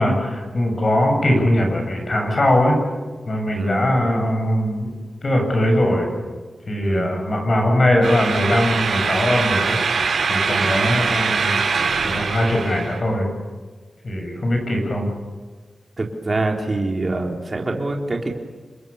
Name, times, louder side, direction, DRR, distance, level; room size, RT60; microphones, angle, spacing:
voice 1, 0.0-2.8 3.2-6.1 6.7-9.8 10.3-11.6 12.0-13.3 14.0-15.1, left 1 dB, 35° left, 3 dB, 7.8 m, -20 dB
sound 1, 8.0-13.0, right 5 dB, 90° right, 5.0 m, -22 dB
voice 2, 10.6-11.0 16.0-18.4, right 2 dB, 30° right, 1 dB, 3.6 m, -25 dB
30.0 x 26.0 x 7.1 m, 1.4 s
wide cardioid pair, 170°, 0 cm